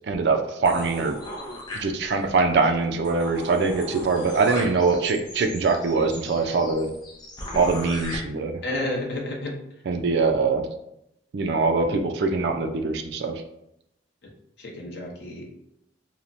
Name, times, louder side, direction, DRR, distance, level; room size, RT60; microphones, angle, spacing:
voice 1, 0.1-1.2 1.7-6.9 7.6-8.5 9.9-10.6 11.3-13.4, right 4 dB, 65° right, 5 dB, 0.4 m, -23 dB
sound 1, 0.6-2.3 2.7-2.8 3.0-8.2, left 1 dB, 25° left, 0.5 m, -38 dB
voice 2, 8.6-9.5 14.6-15.4, left 1 dB, 65° left, -1 dB, 0.7 m, -30 dB
3.0 x 2.0 x 2.5 m, 0.81 s
head